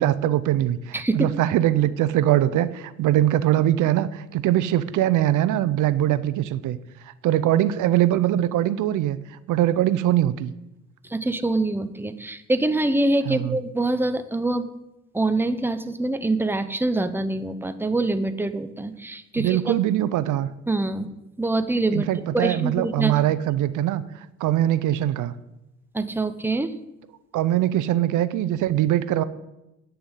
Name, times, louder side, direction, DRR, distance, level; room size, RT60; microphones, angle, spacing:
voice 1, 0.0-6.8 7.2-9.2 9.5-10.5 13.3-13.6 19.4-20.5 21.9-24.0 24.4-25.3 27.3-29.2, right 13 dB, 85° right, 15 dB, 0.7 m, -22 dB
voice 2, 0.9-1.3 11.1-14.7 15.1-19.7 20.7-21.1 21.4-22.1 22.3-23.1 25.9-26.7, right 2 dB, 5° right, 10 dB, 0.9 m, -25 dB
9.3 x 6.8 x 8.3 m, 0.92 s
cardioid pair, 90°, 30 cm